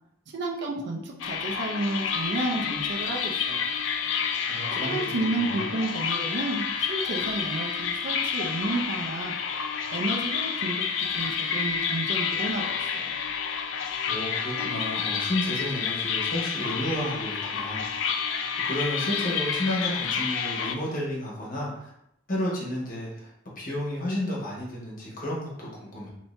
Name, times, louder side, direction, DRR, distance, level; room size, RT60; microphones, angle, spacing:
voice 1, 0.3-3.7 4.8-9.3 9.9-10.8 11.1-13.1, right 2 dB, 65° right, -2 dB, 0.5 m, -31 dB
sound 1, 1.2-20.7, left 6 dB, 75° left, 0.3 m, -29 dB
voice 2, 4.5-5.6 14.1-18.1 18.6-21.9 22.3-23.3 23.6-26.1, left 1 dB, 50° left, -4 dB, 1.1 m, -32 dB
3.0 x 2.7 x 3.2 m, 0.76 s
head